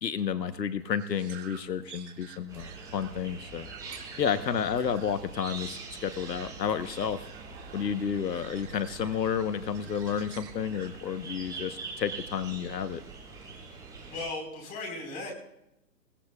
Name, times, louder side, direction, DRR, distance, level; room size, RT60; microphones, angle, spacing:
voice 1, 0.0-3.7 4.2-7.2 7.7-13.0, left 7 dB, 80° left, 10 dB, 1.2 m, -31 dB
sound 1, 0.8-11.6, right 8 dB, 45° right, 2.8 m, -51 dB
sound 2, 2.5-14.2, right 4 dB, 10° right, 6.9 m, -44 dB
voice 2, 13.4-15.3, left 2 dB, 15° left, 1 dB, 4.6 m, -38 dB
28.0 x 17.0 x 2.4 m, 0.86 s
hypercardioid pair, 150°, 49 cm